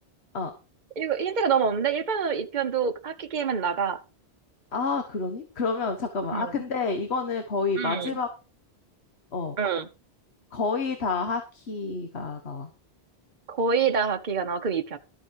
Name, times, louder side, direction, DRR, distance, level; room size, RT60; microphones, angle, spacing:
voice 1, 1.0-4.0 6.3-6.6 7.8-8.2 9.6-9.9 13.5-15.0, right 6 dB, 45° right, 7 dB, 1.1 m, -26 dB
voice 2, 4.7-8.3 9.3-9.6 10.5-12.7, left 4 dB, 75° left, 6 dB, 1.6 m, -29 dB
13.0 x 7.5 x 4.7 m, 0.32 s
omnidirectional pair, 1.1 m